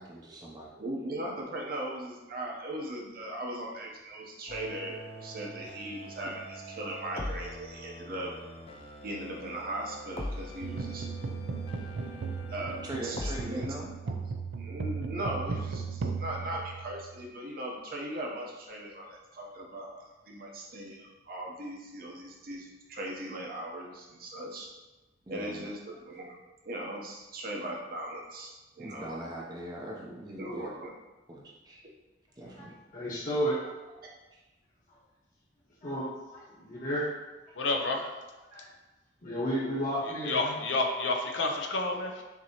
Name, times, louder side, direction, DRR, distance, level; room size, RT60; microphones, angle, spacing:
voice 1, 0.0-0.7 12.8-13.9 16.3-16.6 25.3-25.7 28.8-30.7 31.3-31.8 32.4-32.8 34.3-34.4, right 1 dB, 20° right, -3 dB, 0.5 m, -41 dB
voice 2, 0.7-8.3 9.0-11.1 12.5-13.7 14.0-14.1 14.6-24.7 25.3-26.4 26.6-29.2 30.4-30.9, right 1 dB, 55° right, -1 dB, 0.8 m, -39 dB
sound 1, 4.5-13.5, left 1 dB, 30° left, 0.4 m, -42 dB
sound 2, 10.6-17.3, right 4 dB, 85° right, 0.4 m, -36 dB
voice 3, 32.9-33.5 35.8-36.0 36.6-37.1 38.5-38.6 39.2-40.5, equal, 45° left, -9 dB, 1.2 m, -31 dB
voice 4, 37.5-38.1 40.0-42.2, left 3 dB, 80° left, 3 dB, 0.6 m, -30 dB
5.9 x 2.8 x 2.9 m, 1.1 s
head